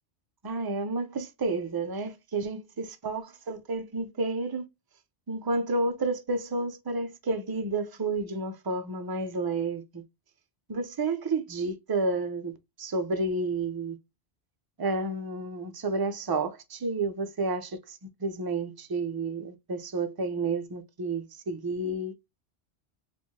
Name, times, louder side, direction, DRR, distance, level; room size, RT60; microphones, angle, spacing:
voice 1, 0.4-4.6 5.3-10.0 10.7-14.0 14.8-22.1, right 3 dB, 40° right, 0.3 m, -31 dB
4.5 x 2.5 x 2.8 m
omnidirectional pair, 1.1 m